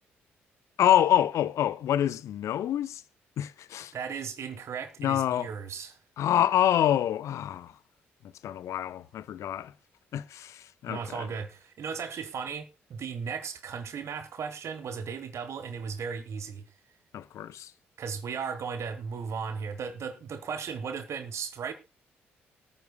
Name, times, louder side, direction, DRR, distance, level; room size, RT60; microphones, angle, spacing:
voice 1, 0.8-3.0 3.4-3.9 5.0-5.5 6.2-7.8 8.4-9.7 10.1-11.3 17.1-17.7, left 11 dB, 55° left, 0.6 m, -26 dB
voice 2, 3.9-6.0 10.9-16.7 18.0-21.7, right 6 dB, 50° right, 1.2 m, -36 dB
23.0 x 9.3 x 2.2 m
figure-of-eight pair, 45°, 6 cm